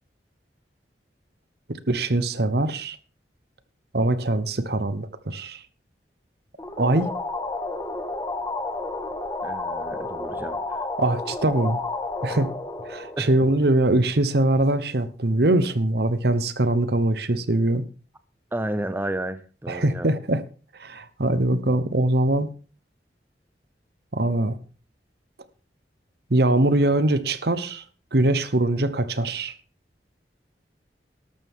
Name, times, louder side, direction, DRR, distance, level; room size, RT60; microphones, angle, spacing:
voice 1, 1.9-3.0 3.9-5.6 6.8-7.1 11.0-11.8 12.2-12.5 12.8-17.8 19.7-20.4 20.8-22.5 24.1-24.6 26.3-27.8 28.1-29.5, right 1 dB, 60° right, 1.0 m, -22 dB
sound 1, 6.6-14.0, left 2 dB, 20° left, 1.6 m, -31 dB
voice 2, 9.4-10.8 13.2-13.3 18.5-20.1, right 1 dB, 10° right, 0.6 m, -31 dB
13.0 x 12.0 x 3.7 m
head